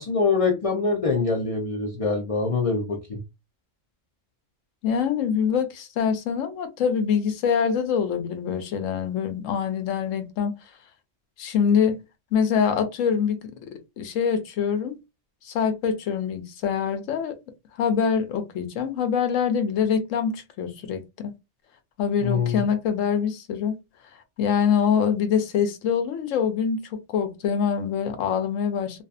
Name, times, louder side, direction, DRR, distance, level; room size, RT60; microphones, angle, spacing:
voice 1, 0.0-3.2 22.2-22.6, left 4 dB, 50° left, 0.4 m, -24 dB
voice 2, 4.8-10.5 11.4-12.0 12.3-13.5 14.0-15.0 15.4-17.4 17.8-21.3 22.0-23.8 24.4-29.0, left 7 dB, 80° left, 1.0 m, -24 dB
2.6 x 2.3 x 2.3 m
omnidirectional pair, 1.3 m